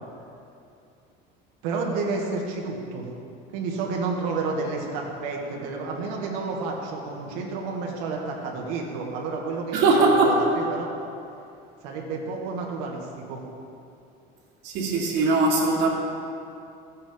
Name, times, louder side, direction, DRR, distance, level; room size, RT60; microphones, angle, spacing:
voice 1, 1.6-3.1 3.5-10.9 11.8-13.4, right 4 dB, 85° right, -1 dB, 2.0 m, -30 dB
voice 2, 9.7-10.4 14.6-15.9, right 3 dB, 60° right, -3 dB, 2.3 m, -20 dB
15.0 x 8.9 x 3.8 m, 2.6 s
cardioid pair, 155°, 20 cm